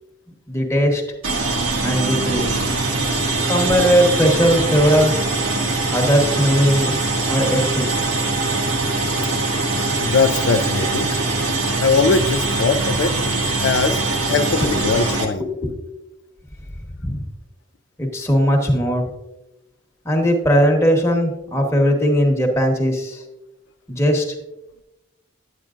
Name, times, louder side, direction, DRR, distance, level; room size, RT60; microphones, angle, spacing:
voice 1, 0.5-1.0 1.8-2.7 3.2-5.1 5.9-7.0 7.3-7.9 8.8-9.3 14.6-14.8 15.4-15.8 17.0-17.2 18.0-19.1 20.0-23.2 23.9-24.3, equal, 15° left, 1 dB, 1.1 m, -19 dB
sound 1, 1.2-15.2, right 2 dB, 90° right, 1.3 m, -22 dB
voice 2, 10.0-11.2 11.8-13.1 13.6-14.0 14.3-15.5, left 4 dB, 60° left, 7 dB, 0.4 m, -20 dB
9.7 x 8.6 x 2.5 m, 0.95 s
head